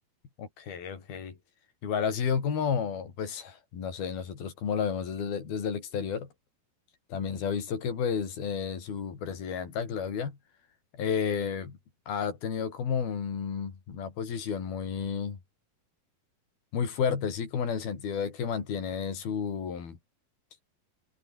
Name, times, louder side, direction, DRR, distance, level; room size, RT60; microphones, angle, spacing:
voice 1, 0.4-1.4 1.8-6.3 7.1-10.4 10.9-11.8 12.1-15.4 16.7-20.0, left 7 dB, 75° left, 6.0 m, -31 dB
omnidirectional pair, 4.3 m